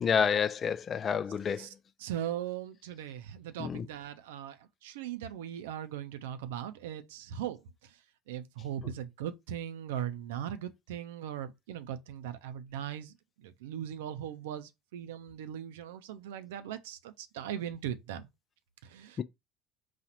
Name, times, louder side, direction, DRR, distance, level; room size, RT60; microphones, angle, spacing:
voice 1, 0.0-1.6 3.6-3.8 19.2-19.3, left 7 dB, 40° left, 0.5 m, -29 dB
voice 2, 2.0-7.6 8.3-18.3 18.8-19.2, right 10 dB, 80° right, 0.6 m, -39 dB
4.2 x 2.4 x 4.3 m
hypercardioid pair, 70°, 0 cm